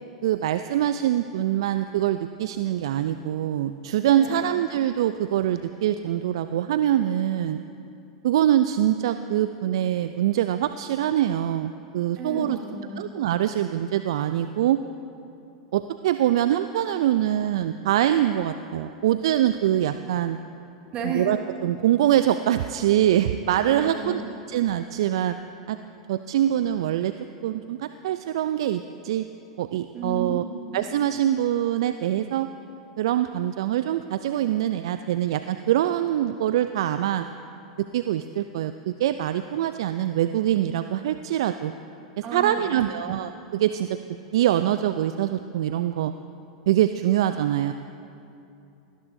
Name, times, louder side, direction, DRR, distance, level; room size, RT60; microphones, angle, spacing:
voice 1, 0.2-7.6 8.2-12.6 13.0-14.8 15.7-20.4 21.0-21.4 21.6-24.2 24.5-25.4 25.7-25.8 26.1-27.1 27.4-29.3 29.6-30.4 30.7-32.5 33.0-37.3 37.9-41.7 42.3-44.0 44.3-46.1 46.7-47.7, right 11 dB, 65° right, 11 dB, 0.4 m, -24 dB
voice 2, 4.1-4.5 12.2-13.0 20.9-21.3 23.7-24.2 29.9-30.6 42.2-43.1, right 4 dB, 40° right, -1 dB, 2.9 m, -33 dB
18.5 x 17.5 x 2.7 m, 2.8 s
hypercardioid pair, 95°, 3 cm